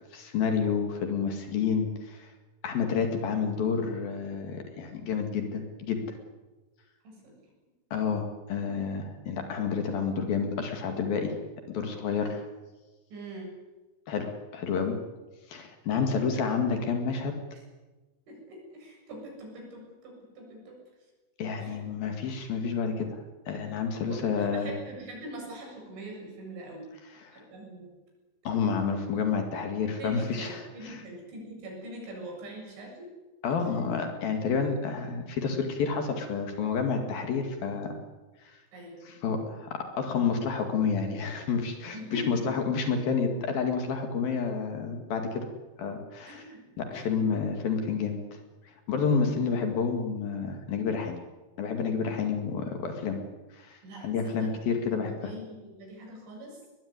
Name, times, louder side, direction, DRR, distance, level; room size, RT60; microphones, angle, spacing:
voice 1, 0.1-2.3 2.6-6.2 7.9-11.4 11.7-12.4 14.1-15.0 15.5-17.4 21.4-23.2 23.5-24.7 27.1-27.4 28.5-31.0 33.4-38.0 38.5-38.6 39.0-45.5 45.8-46.5 46.8-48.2 48.9-51.2 51.6-53.2 53.5-55.3, left 5 dB, 55° left, 5 dB, 3.5 m, -29 dB
voice 2, 7.0-7.4 13.1-13.5 18.3-20.8 21.6-21.8 24.0-26.9 27.3-27.9 30.0-33.1 33.8-33.9 38.7-39.2 41.9-42.6 46.3-46.6 46.9-47.2 49.3-49.4 53.8-54.7 55.0-56.6, right 1 dB, 75° right, 0 dB, 9.8 m, -43 dB
21.5 x 21.0 x 9.8 m, 1.2 s
omnidirectional pair, 5.4 m